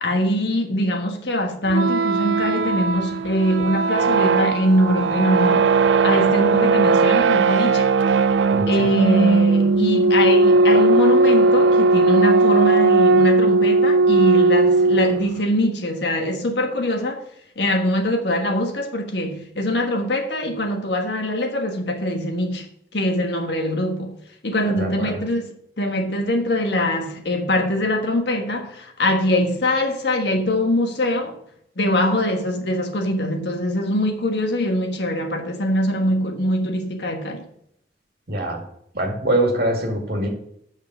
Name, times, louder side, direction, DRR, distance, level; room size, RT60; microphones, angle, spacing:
voice 1, 0.0-5.7 6.0-7.9 8.7-17.2 17.6-22.7 22.9-24.2 24.4-31.4 31.8-37.4, left 1 dB, 70° left, 1.4 m, -23 dB
sound 1, 1.7-15.4, right 3 dB, 85° right, 0.4 m, -17 dB
voice 2, 8.5-8.9 24.7-25.2 38.3-38.6 38.9-40.3, right 1 dB, 55° right, 2.2 m, -23 dB
7.2 x 6.2 x 6.1 m
head